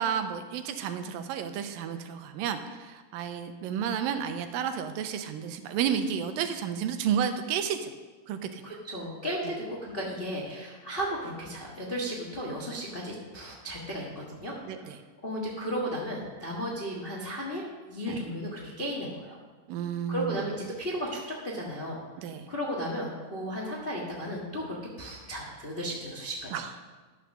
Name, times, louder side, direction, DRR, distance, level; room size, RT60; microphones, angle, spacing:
voice 1, 0.0-7.9 8.3-8.8 9.4-9.5 14.6-15.0 18.1-18.2 19.7-20.5 22.2-22.5 26.5-26.7, right 8 dB, 90° right, 8 dB, 2.5 m, -31 dB
voice 2, 8.6-14.9 15.2-19.4 20.1-22.0 22.5-26.5, equal, 60° left, -3 dB, 0.5 m, -35 dB
11.5 x 6.7 x 6.5 m, 1.4 s
omnidirectional pair, 3.9 m